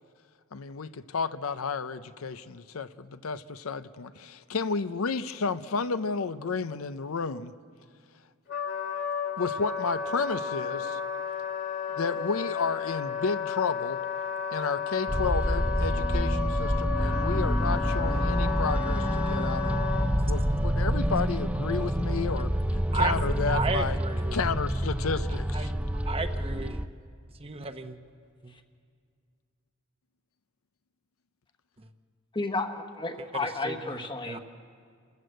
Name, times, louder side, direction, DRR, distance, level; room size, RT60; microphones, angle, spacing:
voice 1, 0.5-7.5 9.4-11.0 12.0-14.0 14.5-19.9 20.3-24.0 24.3-25.7, left 5 dB, 75° left, 12 dB, 0.6 m, -32 dB
Wind instrument woodwind instrument, 8.5-20.1, left 7 dB, 60° left, 2.3 m, -33 dB
sound 1, 15.1-26.9, equal, 5° right, 0.6 m, -27 dB
voice 2, 23.5-24.4 25.5-26.8 27.4-28.0 28.4-28.5 33.6-33.7 34.2-34.4, right 3 dB, 25° right, 7 dB, 0.9 m, -32 dB
voice 3, 32.3-34.4, left 3 dB, 25° left, 7 dB, 1.2 m, -32 dB
28.5 x 14.0 x 7.9 m, 2.2 s
head